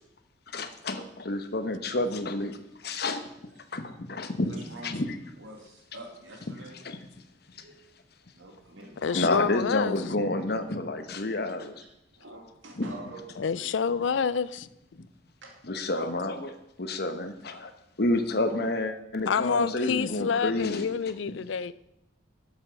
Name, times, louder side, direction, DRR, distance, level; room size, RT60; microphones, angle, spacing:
voice 1, 0.5-3.2 3.7-4.5 4.8-5.2 6.8-7.0 7.5-7.6 9.1-11.8 12.8-12.9 15.0-15.1 15.6-17.7 18.0-20.9 21.3-21.4, left 2 dB, 55° left, 1.0 m, -29 dB
voice 2, 4.4-5.1 5.4-6.8 7.5-7.8 8.3-9.3 12.2-14.4 15.4-15.5, right 1 dB, 80° right, 2.2 m, -46 dB
voice 3, 9.0-10.0 13.4-14.7 19.3-21.7, left 6 dB, 70° left, 0.4 m, -28 dB
12.0 x 7.2 x 5.2 m
head